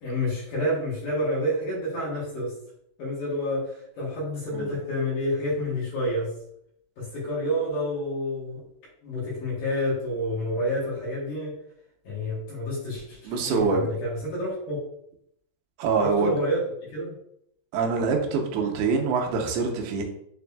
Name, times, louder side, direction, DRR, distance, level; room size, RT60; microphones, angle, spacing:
voice 1, 0.0-2.6 3.0-6.3 7.0-8.6 9.0-11.6 12.0-14.8 16.0-16.6 16.9-17.2, left 1 dB, 65° left, -6 dB, 2.3 m, -29 dB
voice 2, 13.3-13.9 15.8-16.3 17.7-20.0, right 4 dB, 85° right, 1 dB, 2.6 m, -25 dB
6.7 x 2.6 x 2.2 m, 0.72 s
omnidirectional pair, 4.6 m